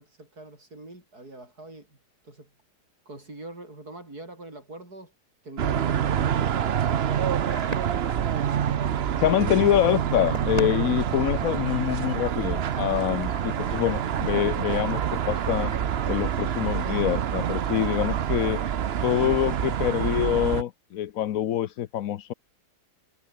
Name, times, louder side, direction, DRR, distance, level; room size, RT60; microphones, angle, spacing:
voice 1, 0.0-2.0 2.2-2.5 3.1-5.1 5.4-7.5, right 2 dB, 70° right, 7.7 m, -43 dB
sound 1, 5.6-20.6, right 9 dB, 50° right, 0.8 m, -27 dB
sound 2, 7.5-16.3, right 1 dB, 20° right, 7.0 m, -42 dB
voice 2, 9.2-15.7 16.1-18.6 19.0-22.3, left 11 dB, 65° left, 1.1 m, -25 dB
omnidirectional pair, 1.7 m